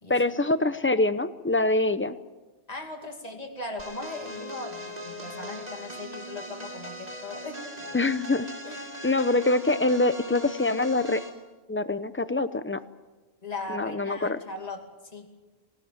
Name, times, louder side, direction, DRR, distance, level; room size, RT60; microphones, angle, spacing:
voice 1, 0.1-2.2 7.9-8.5 9.0-11.2 11.7-12.8 13.7-14.4, left 2 dB, 15° left, 12 dB, 0.7 m, -24 dB
voice 2, 2.7-8.1 8.6-9.1 13.4-14.8 15.1-15.3, left 2 dB, 35° left, 3 dB, 2.6 m, -39 dB
sound 1, 3.8-11.4, equal, 40° right, 2.8 m, -40 dB
19.5 x 18.0 x 9.1 m, 1.2 s
omnidirectional pair, 1.1 m